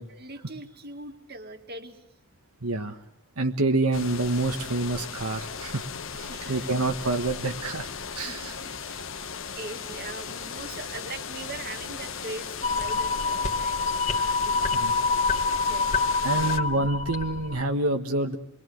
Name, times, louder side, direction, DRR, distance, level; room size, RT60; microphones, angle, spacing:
voice 1, 0.0-2.0 6.3-6.7 8.2-9.2 9.6-15.1 15.4-16.1 16.4-16.6, right 2 dB, 45° right, 6 dB, 2.1 m, -42 dB
voice 2, 2.6-3.0 3.4-5.8 6.2-7.9 8.1-8.5 14.8-14.9 16.2-18.4, right 2 dB, 85° right, 5 dB, 1.5 m, -27 dB
sound 1, 3.9-16.6, left 6 dB, 60° left, 1.3 m, -37 dB
sound 2, 12.6-17.7, left 4 dB, 35° left, 1.9 m, -26 dB
28.0 x 22.0 x 7.9 m, 0.73 s
head